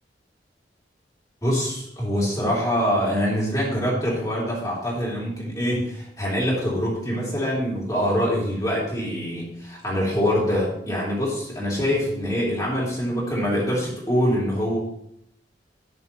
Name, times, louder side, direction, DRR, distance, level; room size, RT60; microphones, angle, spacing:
voice 1, 1.4-14.8, equal, 20° left, -5 dB, 3.3 m, -24 dB
11.5 x 9.3 x 3.0 m, 0.75 s
head